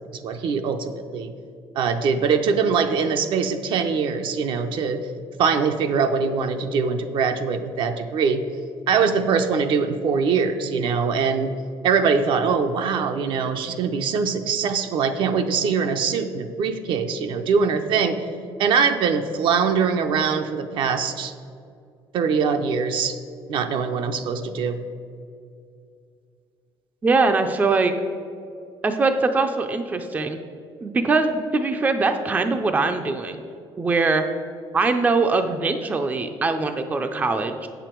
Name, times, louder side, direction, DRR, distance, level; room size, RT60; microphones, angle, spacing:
voice 1, 0.1-1.3 1.8-5.1 5.4-8.4 8.9-11.5 11.8-18.2 18.6-21.3 22.1-23.1 23.5-24.8, right 5 dB, 60° right, 7 dB, 0.6 m, -22 dB
voice 2, 27.0-27.9 28.8-30.4 30.8-33.4 33.8-34.2 34.7-37.7, right 3 dB, 15° right, 7 dB, 0.4 m, -22 dB
8.5 x 6.9 x 4.5 m, 2.4 s
cardioid pair, 150°, 10 cm